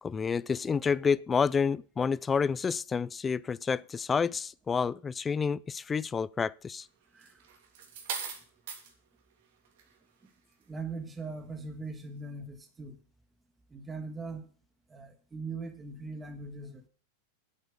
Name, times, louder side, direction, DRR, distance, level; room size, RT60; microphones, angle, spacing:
voice 1, 0.0-6.9, left 6 dB, 20° left, 0.4 m, -29 dB
sound 1, 7.2-8.9 9.6-9.9, right 6 dB, 70° right, 3.1 m, -39 dB
voice 2, 10.7-13.0 13.7-14.5 14.9-16.9, right 3 dB, 15° right, 1.7 m, -40 dB
8.7 x 8.5 x 6.6 m
hypercardioid pair, 115°, 0 cm